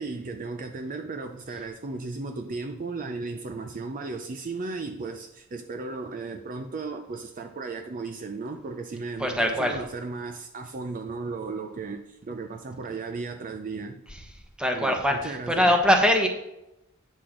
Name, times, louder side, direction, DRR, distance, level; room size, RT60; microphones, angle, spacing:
voice 1, 0.0-14.0 14.7-15.7, right 3 dB, 40° right, 0.5 m, -35 dB
voice 2, 9.2-9.8 14.6-16.3, equal, 5° right, 1.0 m, -22 dB
8.5 x 6.2 x 3.8 m
head